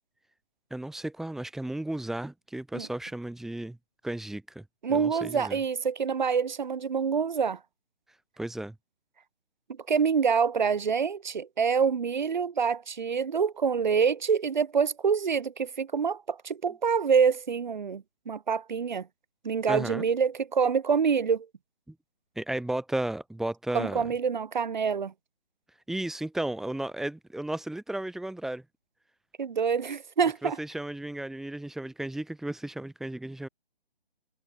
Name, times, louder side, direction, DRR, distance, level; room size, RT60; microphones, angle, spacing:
voice 1, 0.7-3.8 4.0-4.6 4.9-5.6 8.4-8.8 19.7-20.1 21.9-22.0 22.4-24.0 25.9-28.6 30.4-33.5, right 1 dB, ahead, 3.3 m, -34 dB
voice 2, 4.8-7.6 9.9-19.1 19.4-21.5 23.7-25.1 29.4-30.6, right 6 dB, 50° right, 5.4 m, -26 dB
figure-of-eight pair, 155°, 29 cm